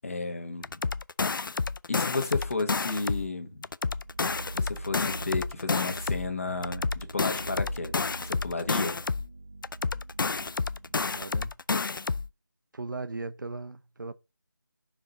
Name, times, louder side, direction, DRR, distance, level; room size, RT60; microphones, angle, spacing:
voice 1, 0.0-0.8 1.9-3.7 4.5-9.0, left 3 dB, 40° left, 1.3 m, -33 dB
sound 1, 0.6-3.3 3.6-6.3 6.6-9.3 9.6-12.3, left 4 dB, 70° left, 0.4 m, -30 dB
sound 2, 3.8-11.5, right 2 dB, 25° right, 0.6 m, -43 dB
voice 2, 10.9-11.5 12.7-14.1, right 3 dB, 60° right, 0.7 m, -38 dB
5.7 x 4.9 x 3.8 m
figure-of-eight pair, 170°, 11 cm